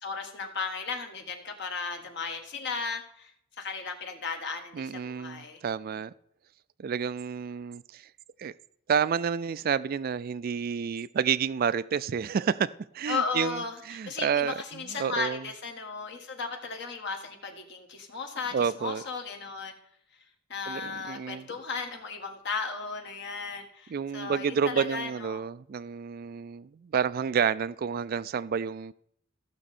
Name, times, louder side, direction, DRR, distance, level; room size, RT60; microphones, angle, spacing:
voice 1, 0.0-3.3 3.6-5.6 13.1-13.8 14.1-19.7 20.5-25.4, left 4 dB, 60° left, 1.5 m, -35 dB
voice 2, 4.7-6.1 6.8-8.1 8.4-8.5 8.9-15.5 18.5-19.0 20.7-21.5 23.9-28.9, right 7 dB, 45° right, 0.3 m, -30 dB
15.0 x 6.4 x 4.2 m
head